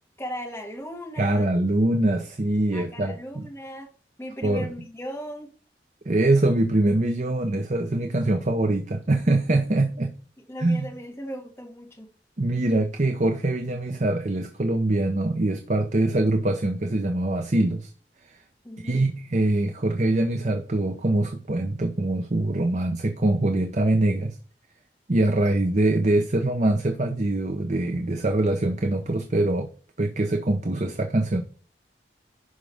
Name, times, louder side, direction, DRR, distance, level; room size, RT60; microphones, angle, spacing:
voice 1, 0.2-1.5 2.7-3.9 4.2-5.5 10.5-12.1 18.6-19.0, equal, 15° left, -1 dB, 2.2 m, -37 dB
voice 2, 1.2-3.5 4.4-4.7 6.1-10.1 10.6-10.9 12.4-17.9 18.3-18.4 18.8-24.4 25.1-29.7 30.0-31.4, right 2 dB, 40° right, 6 dB, 0.8 m, -23 dB
11.0 x 5.3 x 3.6 m, 0.39 s
head